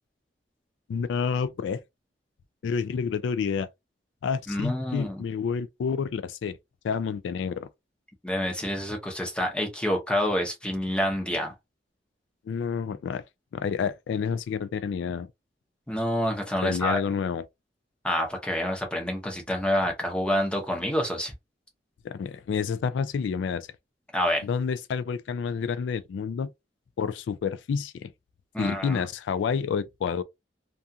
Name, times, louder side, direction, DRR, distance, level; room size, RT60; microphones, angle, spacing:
voice 1, 0.9-1.8 2.6-3.7 4.2-6.6 6.8-7.7 12.5-13.2 13.5-15.3 16.6-17.4 22.0-23.7 24.4-26.5 27.0-28.1 28.6-30.2, left 6 dB, 85° left, 0.3 m, -29 dB
voice 2, 4.5-5.2 8.2-11.5 15.9-17.0 18.0-21.3 24.1-24.4 28.5-29.0, equal, 5° left, 0.7 m, -27 dB
2.4 x 2.4 x 2.6 m
head